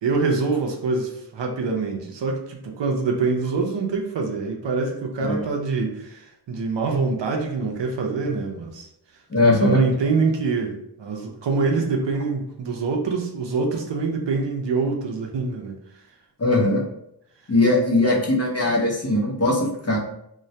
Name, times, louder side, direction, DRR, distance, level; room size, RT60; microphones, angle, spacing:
voice 1, 0.0-8.9 9.5-15.7, right 4 dB, 80° right, 1 dB, 0.6 m, -25 dB
voice 2, 9.3-9.8 16.4-16.8 17.5-20.0, left 2 dB, 35° left, -3 dB, 0.7 m, -20 dB
2.2 x 2.1 x 2.7 m, 0.75 s
wide cardioid pair, 85°, 43 cm